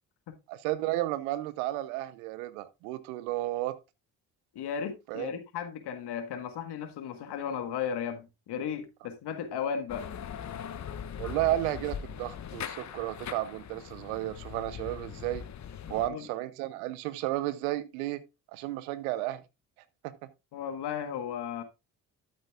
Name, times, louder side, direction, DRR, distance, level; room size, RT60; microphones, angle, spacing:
voice 1, 0.5-3.8 5.1-5.3 11.2-15.4 15.9-18.2 18.5-19.4 20.0-20.1, right 15 dB, 85° right, 0.8 m, -32 dB
voice 2, 4.5-10.1 15.9-16.3 20.5-21.6, left 7 dB, 70° left, 1.7 m, -35 dB
sound 1, 9.9-16.1, left 8 dB, 40° left, 0.8 m, -40 dB
12.5 x 8.3 x 2.4 m
hypercardioid pair, 50°, 42 cm